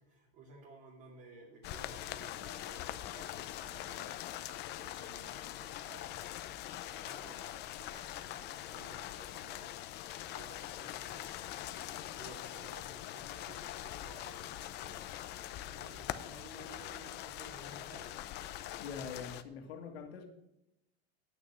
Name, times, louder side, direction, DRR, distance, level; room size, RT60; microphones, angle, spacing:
voice 1, 0.0-6.2 6.9-10.0 10.3-15.1 15.7-18.2, right 3 dB, 45° right, 2.6 m, -56 dB
sound 1, 1.6-19.4, left 13 dB, 35° left, 0.6 m, -43 dB
voice 2, 18.8-20.3, left 6 dB, 85° left, 1.8 m, -44 dB
9.6 x 8.8 x 6.2 m
supercardioid pair, 145°, 30 cm